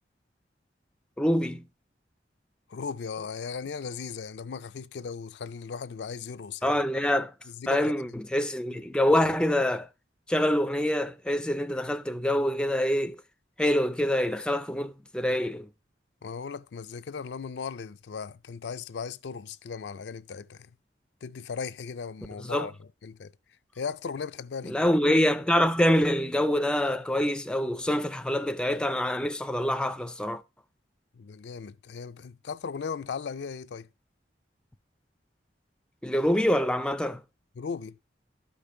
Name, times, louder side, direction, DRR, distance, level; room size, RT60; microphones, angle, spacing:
voice 1, 1.2-1.6 6.6-7.3 7.7-9.9 10.3-13.2 13.6-15.7 22.4-22.7 24.6-30.4 36.0-37.2, left 1 dB, 5° left, 0.4 m, -25 dB
voice 2, 2.7-6.7 7.6-7.9 16.2-20.7 21.2-22.7 23.0-23.3 23.8-24.8 31.1-33.9 37.6-38.0, left 5 dB, 75° left, 0.4 m, -37 dB
12.0 x 5.3 x 4.2 m
head